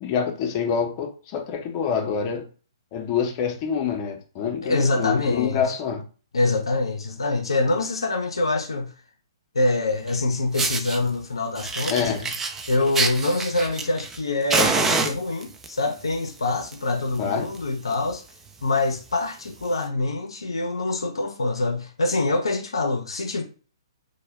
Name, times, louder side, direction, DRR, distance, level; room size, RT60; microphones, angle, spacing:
voice 1, 0.0-2.4 2.9-6.0 11.9-12.3 17.2-17.5, left 7 dB, 35° left, 0.6 m, -26 dB
voice 2, 4.6-5.6 6.3-8.9 9.5-12.1 12.7-18.2 18.6-23.4, left 2 dB, 80° left, 0.5 m, -25 dB
Fire, 10.1-10.2 10.5-11.0 11.5-14.2 14.5-15.7 16.5-16.7 17.1-17.2 17.5-17.6 17.9-18.1 18.7-18.8 19.7-19.8, right 4 dB, 15° right, 0.3 m, -26 dB
2.1 x 2.1 x 3.3 m
figure-of-eight pair, 125°, 3 cm